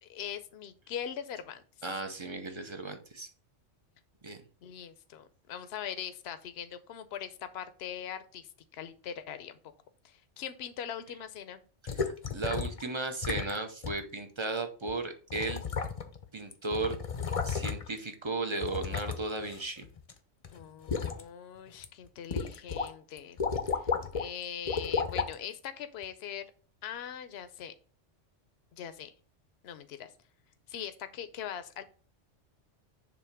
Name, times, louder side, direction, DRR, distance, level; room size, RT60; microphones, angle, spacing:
voice 1, 0.0-1.6 4.6-8.4 8.7-9.6 10.0-11.6 20.5-23.4 23.7-23.8 24.1-26.5 26.8-27.7 28.8-29.1 29.6-30.1 30.7-31.8, left 9 dB, 65° left, 11 dB, 0.9 m, -41 dB
voice 2, 1.8-3.3 4.2-4.4 11.8-15.6 16.3-17.0 17.4-19.8, right 3 dB, 30° right, 6 dB, 0.6 m, -35 dB
sound 1, 11.9-12.8 13.2-13.6 13.8-14.0 14.9-15.0 15.3-16.2 16.5-18.0 18.6-20.1 20.4-21.2 21.7-21.8 22.3-22.9 23.2-24.3 24.7-25.3 26.0-26.1, left 5 dB, 35° left, 0.6 m, -33 dB
7.1 x 2.9 x 5.9 m, 0.40 s
omnidirectional pair, 1.2 m